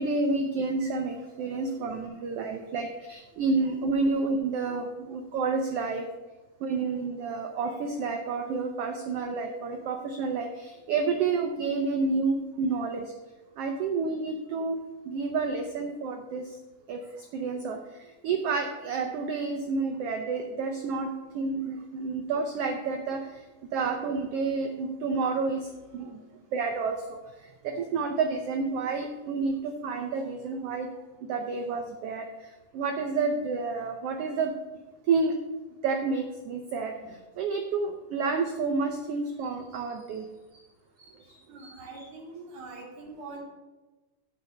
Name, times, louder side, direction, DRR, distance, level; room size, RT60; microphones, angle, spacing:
voice 1, 0.0-6.1 6.6-13.1 13.6-14.8 15.0-16.6 16.9-26.2 26.5-30.9 31.2-34.5 35.1-35.4 35.8-40.3 40.5-40.6 41.0-42.1, right 4 dB, 85° right, 4 dB, 1.3 m, -30 dB
voice 2, 1.4-1.9 37.0-37.1 41.5-43.4, right 3 dB, 70° right, 0 dB, 2.9 m, -44 dB
8.3 x 5.4 x 7.2 m, 1.2 s
omnidirectional pair, 3.6 m